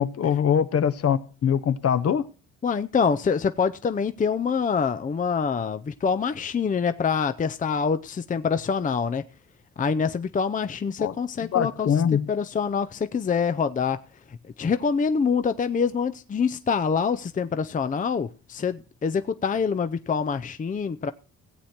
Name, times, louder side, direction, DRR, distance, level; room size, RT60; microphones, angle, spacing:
voice 1, 0.0-2.2 11.0-11.1 11.5-12.3, left 8 dB, 50° left, 1.0 m, -23 dB
voice 2, 2.6-9.2 9.8-14.0 14.3-21.1, left 6 dB, 25° left, 0.6 m, -25 dB
17.5 x 7.9 x 4.4 m
cardioid pair, 90°, 30 cm